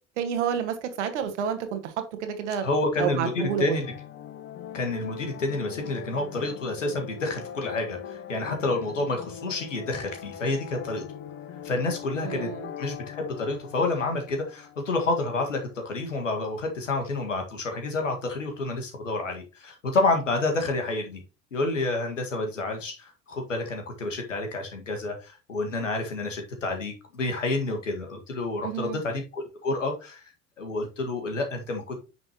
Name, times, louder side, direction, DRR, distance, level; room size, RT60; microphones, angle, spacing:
voice 1, 0.2-1.9 2.2-2.6 3.0-3.8 12.2-12.7 28.6-29.0, right 8 dB, 70° right, 1.6 m, -29 dB
voice 2, 2.6-3.9 4.7-11.0 11.6-12.5 12.8-21.2 21.5-30.3 30.6-32.0, left 2 dB, 80° left, 1.8 m, -29 dB
sound 1, 3.3-16.1, left 9 dB, 35° left, 0.9 m, -41 dB
9.5 x 6.2 x 2.9 m
figure-of-eight pair, 65°, 37 cm